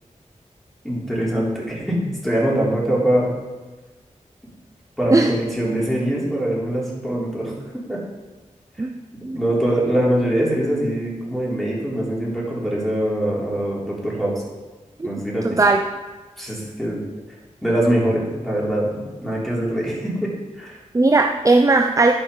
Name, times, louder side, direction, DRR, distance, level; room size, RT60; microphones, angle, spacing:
voice 1, 0.8-3.3 5.0-8.0 9.3-14.3 15.0-15.6 16.4-17.0 17.6-20.3 20.6-20.8, right 1 dB, ahead, -6 dB, 3.8 m, -23 dB
voice 2, 15.4-15.8 20.9-22.1, right 3 dB, 25° right, 5 dB, 0.6 m, -17 dB
12.0 x 5.5 x 5.6 m, 1.2 s
wide cardioid pair, 70°, 13 cm